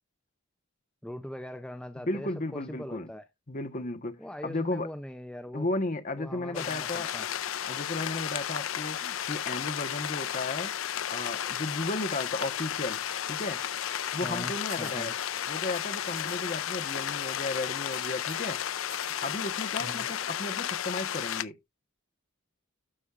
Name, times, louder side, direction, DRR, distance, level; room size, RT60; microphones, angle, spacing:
voice 1, 1.0-3.3 4.2-5.7 6.2-7.3 14.2-15.1 19.8-20.1, left 1 dB, 5° left, 0.4 m, -41 dB
voice 2, 2.1-3.1 3.5-4.9 5.5-7.1 7.7-13.0 13.3-13.6 14.1-15.1 15.5-18.6 19.2-21.6, left 2 dB, 40° left, 1.1 m, -34 dB
sound 1, 6.5-21.4, left 10 dB, 70° left, 0.5 m, -33 dB
sound 2, 14.7-15.0 15.7-16.6 16.8-17.1 17.3-18.5 18.8-19.5, right 9 dB, 80° right, 1.8 m, -51 dB
12.5 x 6.3 x 2.4 m
head